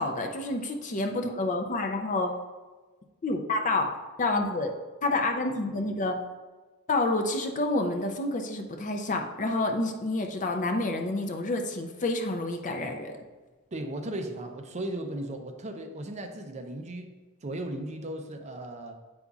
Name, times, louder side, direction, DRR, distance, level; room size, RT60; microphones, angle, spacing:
voice 1, 0.0-2.3 3.2-3.9 4.2-4.7 5.0-6.2 6.9-13.2, left 2 dB, 35° left, 4 dB, 0.5 m, -28 dB
voice 2, 13.7-17.1 17.4-19.0, right 1 dB, 30° right, 5 dB, 0.5 m, -36 dB
8.2 x 5.2 x 2.4 m, 1.3 s
head